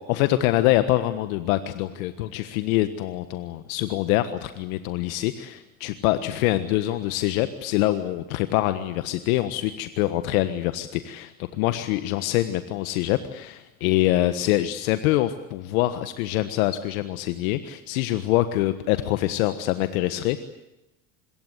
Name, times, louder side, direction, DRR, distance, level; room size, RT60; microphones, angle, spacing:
voice 1, 0.0-20.4, left 15 dB, 75° left, 11 dB, 1.5 m, -25 dB
25.5 x 22.5 x 8.1 m, 0.92 s
hypercardioid pair, 80°, 42 cm